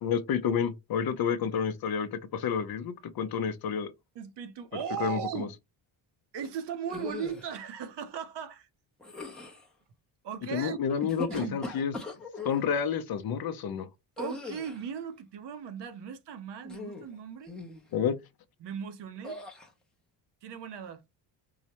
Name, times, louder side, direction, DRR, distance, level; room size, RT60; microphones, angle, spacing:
voice 1, 0.0-3.9 5.0-5.5 10.5-11.9 12.4-13.9 17.9-18.2, left 7 dB, 50° left, 0.5 m, -30 dB
voice 2, 4.2-5.5 6.3-8.7 10.2-10.8 11.3-11.6 14.2-17.5 18.6-19.4 20.4-21.0, right 7 dB, 55° right, 0.7 m, -37 dB
sound 1, 6.9-7.5 9.0-9.7 10.9-12.6 14.2-14.9 16.6-17.1 17.5-17.8 19.2-19.7, left 3 dB, ahead, 0.6 m, -40 dB
4.7 x 2.1 x 2.8 m
cardioid pair, 140°, 49 cm